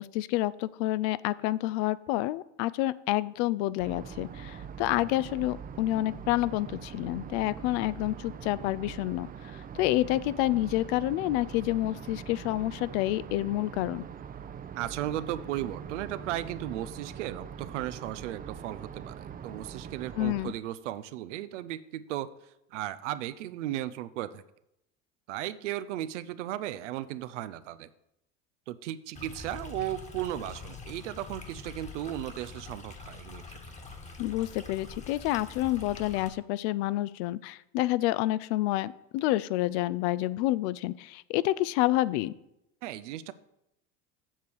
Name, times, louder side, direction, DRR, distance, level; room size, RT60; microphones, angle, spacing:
voice 1, 0.0-9.3 9.7-14.1 20.2-20.5 34.2-42.3, left 16 dB, 65° left, 18 dB, 0.5 m, -28 dB
sound 1, 3.8-20.6, right 7 dB, 25° right, 0.5 m, -43 dB
voice 2, 14.8-22.3 22.7-24.4 25.3-27.9 28.7-33.6 42.8-43.3, right 13 dB, 85° right, 14 dB, 0.6 m, -36 dB
Stream, 29.1-36.3, left 4 dB, 20° left, 1.4 m, -45 dB
7.4 x 6.8 x 4.6 m, 0.83 s
hypercardioid pair, 90°, 35 cm